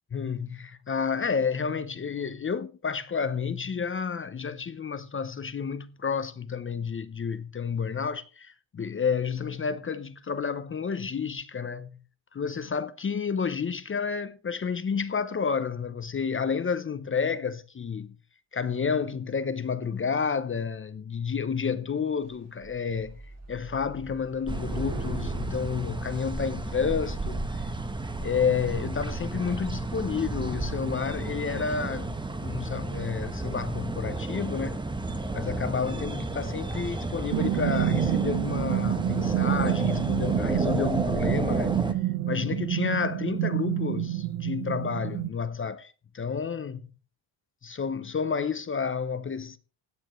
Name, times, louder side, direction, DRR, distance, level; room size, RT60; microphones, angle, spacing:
voice 1, 0.1-12.0 12.3-18.2 18.5-23.2 23.5-27.4 28.2-34.8 35.3-41.7 42.3-46.9 47.6-49.6, left 6 dB, 25° left, 0.6 m, -30 dB
Thunder / Rain, 22.2-22.4 22.6-26.7 27.5-27.9 28.3-28.5 28.7-32.5, right 3 dB, 30° right, 2.7 m, -42 dB
sound 1, 24.5-41.9, right 2 dB, 10° right, 1.0 m, -32 dB
sound 2, 37.3-45.3, right 14 dB, 80° right, 1.0 m, -28 dB
16.5 x 9.1 x 3.1 m
cardioid pair, 130°, 47 cm